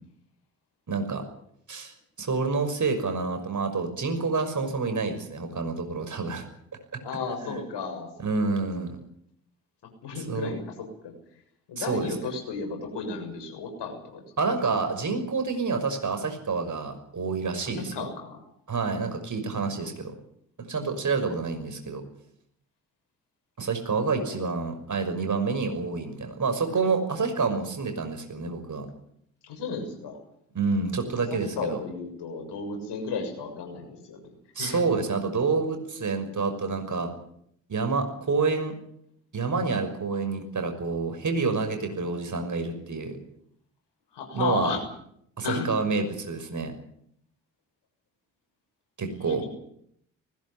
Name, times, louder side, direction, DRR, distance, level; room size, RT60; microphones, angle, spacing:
voice 1, 0.9-1.2 1.7-1.9 2.2-6.4 7.4-7.6 8.2-9.0 10.1-10.5 11.8-12.1 14.4-18.1 18.7-20.1 20.7-22.0 23.6-28.9 30.5-31.8 34.6-37.1 37.7-38.7 39.3-43.2 44.3-44.7 45.4-46.7 49.0-49.4, right 4 dB, 40° right, 6 dB, 6.0 m, -28 dB
voice 2, 7.0-8.1 8.8-8.9 10.0-10.8 11.0-11.1 11.7-14.2 17.6-18.4 24.0-24.4 29.4-30.2 31.3-34.8 44.1-44.8 45.4-45.7 49.2-49.5, left 4 dB, 60° left, 4 dB, 7.0 m, -34 dB
20.0 x 17.5 x 10.0 m, 0.71 s
figure-of-eight pair, 45°, 46 cm